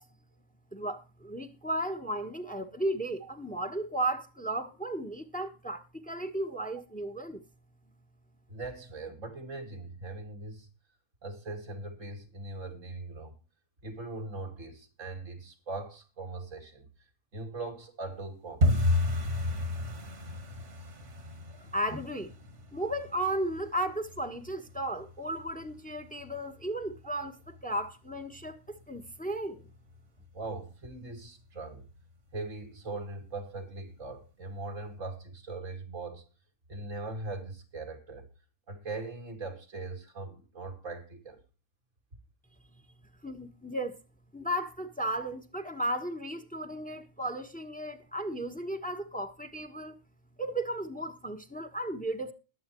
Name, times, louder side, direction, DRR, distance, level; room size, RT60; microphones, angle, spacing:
voice 1, 0.7-7.4 21.6-22.3 22.7-29.6 43.2-43.9 44.3-49.9 50.4-52.3, right 1 dB, 5° left, 1.3 m, -35 dB
voice 2, 8.5-10.7 11.2-13.3 13.8-16.9 17.3-18.8 30.3-31.8 32.3-36.3 36.7-38.3 38.7-41.4, right 3 dB, 90° right, 2.9 m, -40 dB
sound 1, 18.6-29.3 29.6-30.3 30.5-30.8 31.1-31.5 31.8-31.9 32.4-32.9 33.3-33.4 33.9-34.0, left 1 dB, 65° right, 2.1 m, -34 dB
21.0 x 8.2 x 3.1 m
omnidirectional pair, 1.3 m